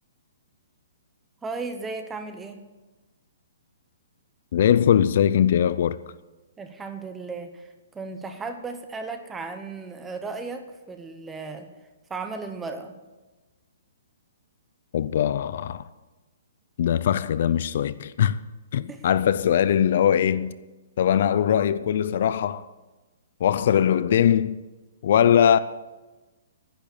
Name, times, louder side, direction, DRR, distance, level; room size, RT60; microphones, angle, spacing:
voice 1, 1.4-2.6 6.6-11.7 12.1-12.9 18.9-19.0, right 4 dB, 10° right, 0.9 m, -35 dB
voice 2, 4.5-6.0 14.9-15.9 16.8-18.4 18.7-20.5 21.0-22.7 23.4-24.6 25.0-25.6, left 9 dB, 50° left, 0.4 m, -21 dB
11.0 x 10.5 x 6.8 m
hypercardioid pair, 165°, 0 cm